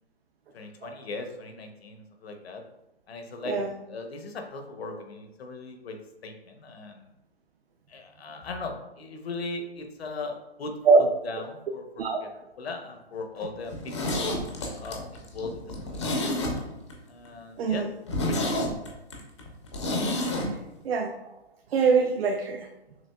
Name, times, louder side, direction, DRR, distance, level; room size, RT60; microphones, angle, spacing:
voice 1, 0.5-2.6 3.1-3.6 3.9-7.1 7.9-10.8 11.2-12.3 12.6-14.3 14.8-15.7 16.0-16.2 17.1-17.9 18.3-18.6, left 3 dB, 70° left, 5 dB, 0.8 m, -38 dB
Zipper (clothing), 13.7-16.9 17.3-17.4 17.7-17.8 18.1-20.5 20.7-20.8, left 1 dB, 25° left, 0.4 m, -29 dB
voice 2, 17.6-17.9 20.4-20.6 20.8-21.2 21.7-22.7, right 4 dB, 65° right, 3 dB, 0.5 m, -22 dB
6.1 x 2.5 x 2.3 m, 0.92 s
hypercardioid pair, 160°, 32 cm